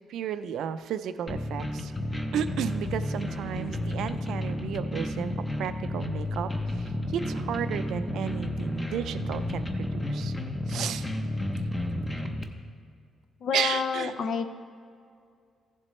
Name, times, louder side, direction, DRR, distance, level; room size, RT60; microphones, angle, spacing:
voice 1, 0.1-1.9 2.3-10.3 10.7-11.1 13.5-14.1, right 8 dB, 75° right, 11 dB, 0.4 m, -33 dB
sound 1, 1.3-12.4, left 1 dB, 10° left, 0.7 m, -32 dB
voice 2, 13.4-14.5, left 6 dB, 55° left, 10 dB, 0.6 m, -29 dB
15.0 x 7.4 x 3.2 m, 2.3 s
cardioid pair, 165°, 0 cm